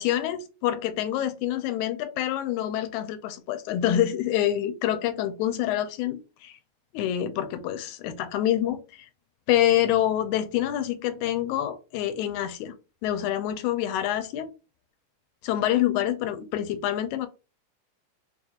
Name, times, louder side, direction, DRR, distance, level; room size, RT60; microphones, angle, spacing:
voice 1, 0.0-6.6 6.9-9.1 9.5-12.7 13.0-14.5 15.4-17.3, left 12 dB, 90° left, 2.0 m, -26 dB
5.0 x 2.4 x 2.8 m
omnidirectional pair, 3.3 m